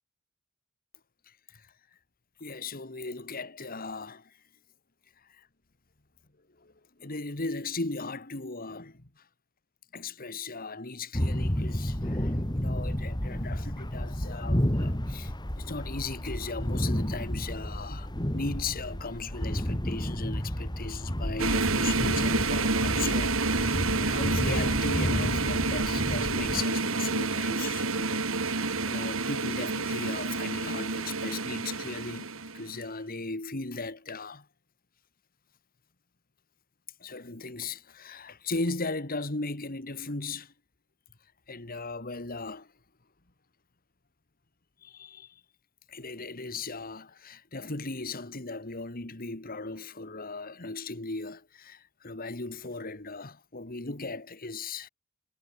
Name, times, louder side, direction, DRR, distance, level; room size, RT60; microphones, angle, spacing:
voice 1, 2.4-4.3 5.3-5.4 6.6-6.7 7.0-9.1 9.9-32.3 32.5-34.5 37.0-40.5 41.5-42.7 44.8-45.3 45.9-54.9, left 3 dB, 45° left, 2.3 m, -37 dB
sound 1, 11.1-26.6, equal, 20° left, 2.5 m, -31 dB
sound 2, 21.4-32.7, right 3 dB, 70° right, 2.8 m, -29 dB
head